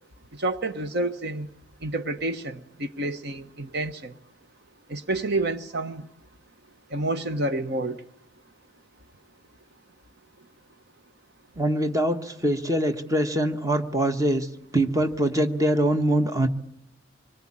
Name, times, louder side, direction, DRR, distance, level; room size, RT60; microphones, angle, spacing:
voice 1, 0.4-1.5 1.8-4.1 4.9-6.1 6.9-8.0, right 2 dB, 55° right, 1.1 m, -29 dB
voice 2, 11.6-14.5 14.7-16.5, right 1 dB, 15° right, 1.3 m, -23 dB
26.0 x 22.0 x 8.8 m
head